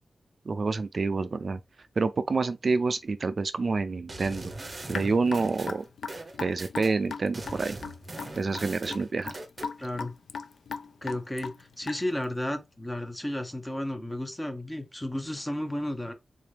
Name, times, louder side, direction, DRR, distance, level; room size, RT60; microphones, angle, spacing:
voice 1, 0.5-1.6 2.0-4.5 4.9-5.8 6.4-7.8 8.4-9.3, right 4 dB, 45° right, 0.3 m, -27 dB
sound 1, 4.1-6.9 7.3-9.7, right 2 dB, 30° right, 0.7 m, -41 dB
Raindrop / Drip, 4.9-12.2, left 5 dB, 85° left, 0.3 m, -38 dB
voice 2, 9.8-10.2 11.0-16.1, left 1 dB, 15° left, 0.7 m, -33 dB
3.8 x 2.8 x 3.2 m
wide cardioid pair, 140°, 0 cm